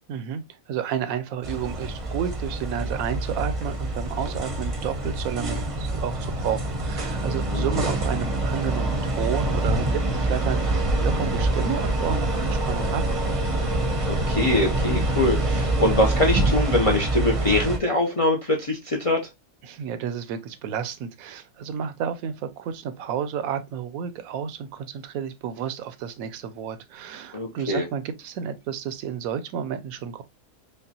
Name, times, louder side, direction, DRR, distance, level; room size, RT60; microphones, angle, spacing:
voice 1, 0.1-0.4 0.7-13.0 19.6-30.2, right 8 dB, 85° right, 1.0 m, -31 dB
sound 1, 1.4-17.8, right 2 dB, 35° right, 0.6 m, -25 dB
voice 2, 14.1-19.2 27.3-27.8, left 2 dB, 50° left, 0.4 m, -23 dB
5.2 x 2.1 x 2.7 m
omnidirectional pair, 1.4 m